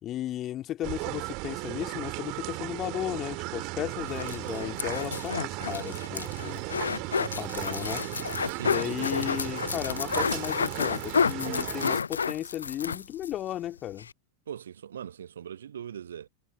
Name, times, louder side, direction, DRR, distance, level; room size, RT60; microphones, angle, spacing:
voice 1, 0.0-6.6 7.2-8.0 8.6-14.1, left 12 dB, 30° left, 2.3 m, -35 dB
sound 1, 0.8-12.0, right 27 dB, 40° right, 3.4 m, -36 dB
sound 2, 4.0-13.4 13.7-13.8 14.0-14.1, left 6 dB, 75° left, 0.5 m, -30 dB
voice 2, 8.4-9.2 14.5-16.3, right 9 dB, 65° right, 1.0 m, -40 dB
figure-of-eight pair, 90°, 0 cm